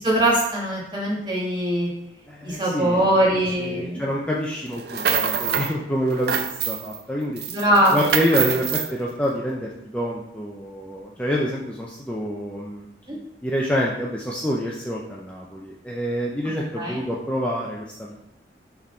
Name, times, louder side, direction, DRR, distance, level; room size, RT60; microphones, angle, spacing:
voice 1, 0.0-1.9 2.4-4.0 7.5-8.1 13.1-13.2 16.7-17.0, right 1 dB, 25° right, -3 dB, 1.4 m, -21 dB
voice 2, 2.3-3.0 3.6-6.3 6.6-7.4 7.9-12.9 13.4-18.1, equal, 5° left, -4 dB, 0.5 m, -27 dB
sound 1, 4.7-5.7 6.1-7.0 7.4-8.9, right 7 dB, 65° right, 0.4 m, -25 dB
6.2 x 3.6 x 4.2 m, 0.80 s
head